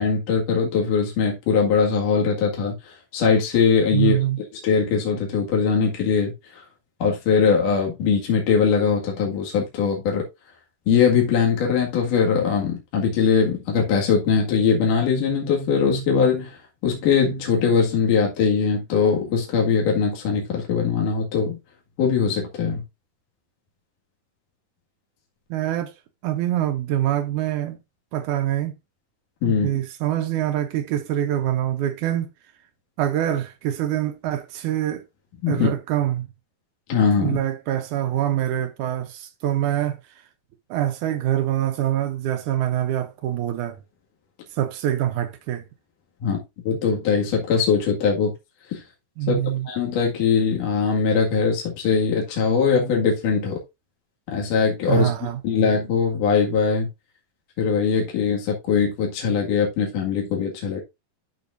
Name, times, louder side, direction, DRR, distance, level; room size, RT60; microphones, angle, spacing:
voice 1, 0.0-4.2 4.6-6.6 7.0-10.2 10.9-16.6 16.8-21.6 22.0-22.8 29.4-29.7 35.4-35.7 36.9-37.4 46.2-46.4 46.6-48.3 48.7-48.8 49.3-49.4 49.6-53.6 54.3-55.1 55.4-56.9 57.6-60.8, left 6 dB, 60° left, 3.4 m, -21 dB
voice 2, 3.9-4.4 25.5-25.9 26.2-27.8 28.1-28.8 29.4-32.3 33.0-35.0 35.5-36.3 37.2-40.0 40.7-43.8 44.5-45.6 49.2-49.7 54.9-55.4, right 12 dB, 75° right, 1.8 m, -24 dB
12.0 x 6.0 x 2.6 m
omnidirectional pair, 4.3 m